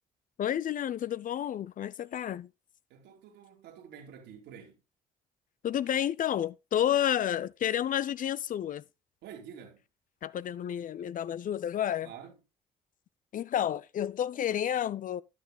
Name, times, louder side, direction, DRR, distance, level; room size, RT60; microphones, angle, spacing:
voice 1, 0.4-2.5 5.6-8.8 10.2-12.1 13.3-15.2, left 10 dB, 45° left, 0.6 m, -30 dB
voice 2, 2.9-4.8 9.2-9.8 12.0-12.4, right 8 dB, 65° right, 2.6 m, -48 dB
12.5 x 10.0 x 2.3 m
figure-of-eight pair, 45°, 19 cm